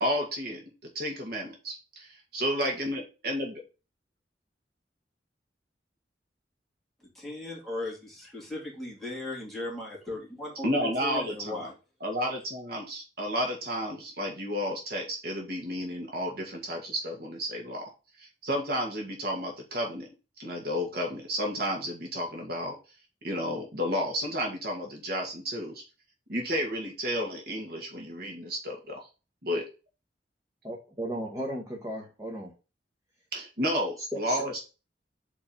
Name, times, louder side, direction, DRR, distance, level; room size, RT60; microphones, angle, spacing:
voice 1, 0.0-3.6 10.6-11.7 12.0-17.9 18.2-20.1 20.4-22.7 23.2-25.8 26.3-29.0 29.4-29.6 33.3-34.7, equal, 60° right, 0 dB, 1.8 m, -32 dB
voice 2, 7.1-11.7, left 2 dB, ahead, -4 dB, 2.7 m, -37 dB
voice 3, 30.6-32.5 34.1-34.4, equal, 20° right, -1 dB, 1.2 m, -35 dB
4.6 x 4.4 x 5.9 m, 0.32 s
head